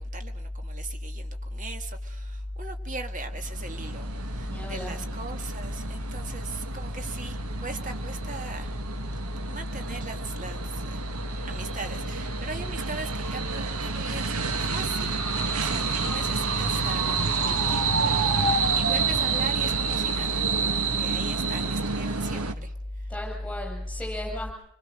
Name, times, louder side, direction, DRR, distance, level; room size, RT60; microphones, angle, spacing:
voice 1, 0.0-8.8 9.5-11.1 11.5-23.1, right 3 dB, 35° right, 6 dB, 1.8 m, -40 dB
sound 1, 3.3-22.5, right 4 dB, 85° right, 1.5 m, -29 dB
voice 2, 4.4-5.1 23.1-24.5, left 1 dB, 5° left, -2 dB, 7.6 m, -33 dB
27.0 x 22.0 x 6.5 m, 0.81 s
head